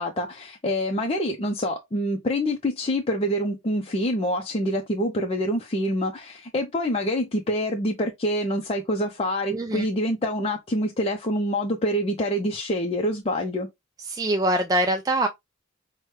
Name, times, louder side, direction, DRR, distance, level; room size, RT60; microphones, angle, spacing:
voice 1, 0.0-13.7, equal, 30° left, 0.5 m, -26 dB
voice 2, 9.5-9.9 14.1-15.3, right 1 dB, 20° right, 0.3 m, -23 dB
5.8 x 2.2 x 3.2 m
head